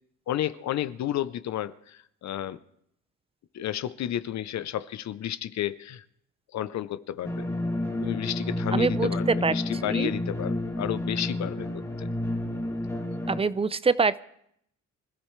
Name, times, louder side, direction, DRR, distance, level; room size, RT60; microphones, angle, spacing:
voice 1, 0.3-2.6 3.5-6.0 6.5-7.5 8.0-11.7 12.0-12.1, left 11 dB, 65° left, 13 dB, 0.7 m, -32 dB
sound 1, 7.2-13.4, left 1 dB, 10° left, 1.9 m, -30 dB
voice 2, 8.7-9.5 9.9-10.1 13.3-14.2, right 4 dB, 20° right, 17 dB, 0.6 m, -24 dB
25.5 x 13.5 x 3.3 m, 0.72 s
cardioid pair, 90°, 30 cm